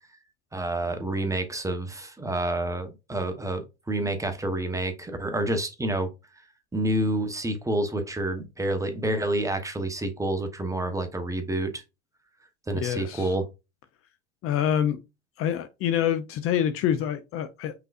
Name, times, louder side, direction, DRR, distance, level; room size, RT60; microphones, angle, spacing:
voice 1, 0.5-6.1 6.7-11.8 12.7-13.5, right 1 dB, 10° right, 1.0 m, -28 dB
voice 2, 12.8-13.3 14.4-15.0 15.4-17.7, left 9 dB, 40° left, 0.6 m, -26 dB
5.5 x 3.9 x 2.4 m
hypercardioid pair, 100°, 37 cm